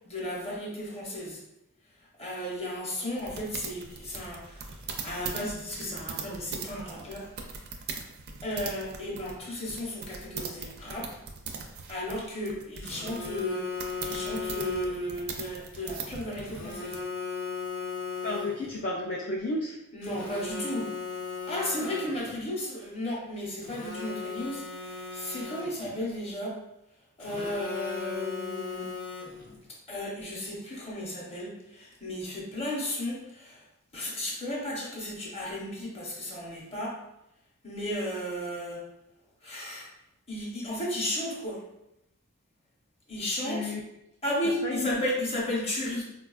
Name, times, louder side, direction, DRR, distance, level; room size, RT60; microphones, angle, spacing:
voice 1, 0.0-1.4 2.2-7.3 8.4-11.2 11.9-17.0 19.9-20.9 21.5-26.6 27.2-28.9 29.9-33.7 33.9-37.0 37.6-38.8 39.4-39.9 40.3-41.6 43.1-43.7 44.2-46.0, left 1 dB, 30° left, -4 dB, 0.8 m, -34 dB
sound 1, 3.2-17.0, right 5 dB, 50° right, 0.4 m, -40 dB
Telephone, 12.8-15.2 16.4-18.8 20.0-22.4 23.6-26.0 27.2-29.6, left 5 dB, 75° left, 0.9 m, -37 dB
voice 2, 18.2-19.8 43.5-43.8 44.6-45.0, left 2 dB, 45° left, -3 dB, 0.3 m, -32 dB
4.1 x 2.3 x 2.3 m, 0.87 s
head